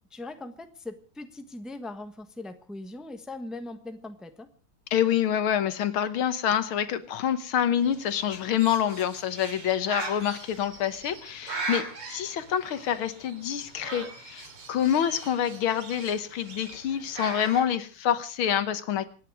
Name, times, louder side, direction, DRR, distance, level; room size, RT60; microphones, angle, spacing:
voice 1, 0.1-4.5, left 2 dB, ahead, 8 dB, 0.9 m, -40 dB
voice 2, 4.9-19.1, left 9 dB, 75° left, 12 dB, 1.9 m, -27 dB
Bird, 7.8-17.7, right 3 dB, 85° right, 4.0 m, -40 dB
25.5 x 10.0 x 4.8 m, 0.37 s
omnidirectional pair, 2.4 m